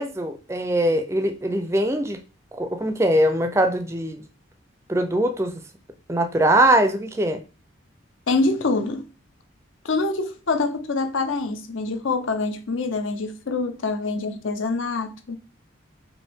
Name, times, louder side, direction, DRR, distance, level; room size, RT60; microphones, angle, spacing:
voice 1, 0.0-2.2 2.5-4.2 4.9-5.5 6.1-7.4, right 1 dB, 15° right, 0.4 m, -21 dB
voice 2, 8.3-9.1 9.8-15.4, left 3 dB, 70° left, 0.6 m, -25 dB
5.3 x 2.6 x 3.5 m
head